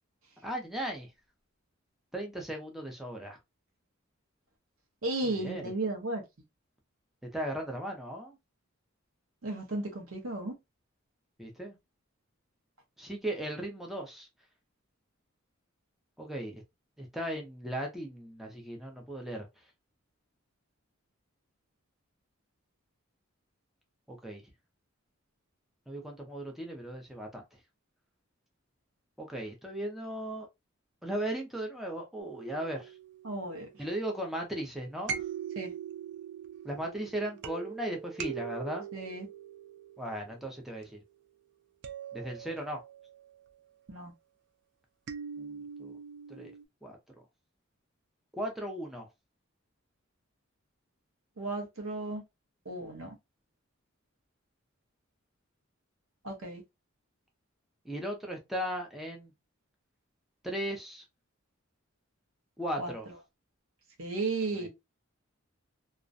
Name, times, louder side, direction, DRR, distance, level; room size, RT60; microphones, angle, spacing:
voice 1, 0.4-1.1 2.1-3.4 5.2-5.7 7.3-8.3 11.4-11.8 13.0-14.3 16.2-16.6 17.0-19.5 24.1-24.4 25.9-27.4 29.2-30.5 31.0-32.9 33.8-35.2 36.6-38.9 40.0-41.0 42.1-42.8 45.4-46.0 46.3-46.5 46.8-47.0 48.3-49.1 57.8-59.3 60.4-61.0 62.6-63.1 64.5-64.7, right 1 dB, ahead, 0.5 m, -37 dB
voice 2, 5.0-6.2 9.4-10.5 33.2-33.7 35.6-35.7 38.9-39.3 43.9-44.1 51.4-52.2 52.7-53.1 56.2-56.6 62.8-62.9 64.0-64.7, right 2 dB, 80° right, 0.8 m, -34 dB
sound 1, 32.2-34.1 35.0-40.9 41.8-43.2 45.1-46.6, right 7 dB, 55° right, 0.3 m, -42 dB
2.4 x 2.1 x 2.5 m
head